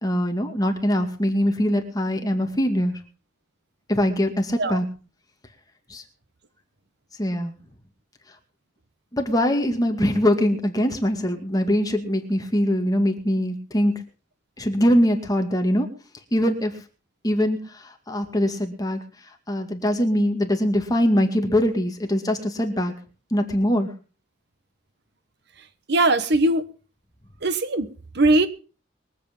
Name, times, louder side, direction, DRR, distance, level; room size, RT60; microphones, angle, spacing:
voice 1, 0.0-3.0 3.9-4.9 5.9-6.0 7.2-7.5 9.1-13.9 14.6-15.9 16.3-16.7 17.2-19.0 19.5-22.9 23.3-23.9, equal, 20° left, 2.3 m, -22 dB
voice 2, 25.9-26.6 27.4-27.9 28.1-28.5, right 2 dB, 60° right, 1.2 m, -19 dB
23.0 x 8.3 x 5.3 m
head